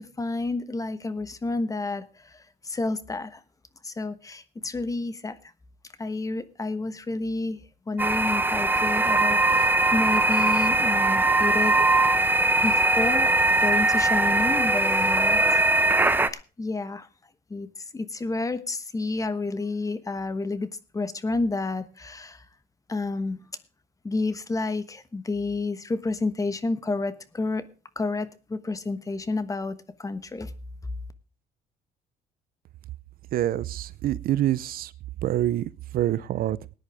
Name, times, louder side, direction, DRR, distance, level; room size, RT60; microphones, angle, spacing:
voice 1, 0.0-3.4 3.8-5.5 6.0-7.6 7.9-11.9 12.6-13.3 13.6-15.6 16.0-16.1 16.6-17.1 17.5-22.4 22.9-23.4 24.0-27.6 27.9-30.5, left 3 dB, 20° left, 14 dB, 1.2 m, -30 dB
sound 1, 8.0-16.3, right 2 dB, 10° right, 0.9 m, -21 dB
voice 2, 33.3-34.9 35.2-36.6, right 13 dB, 60° right, 19 dB, 0.6 m, -26 dB
19.0 x 10.0 x 3.5 m, 0.34 s
cardioid pair, 110°, 17 cm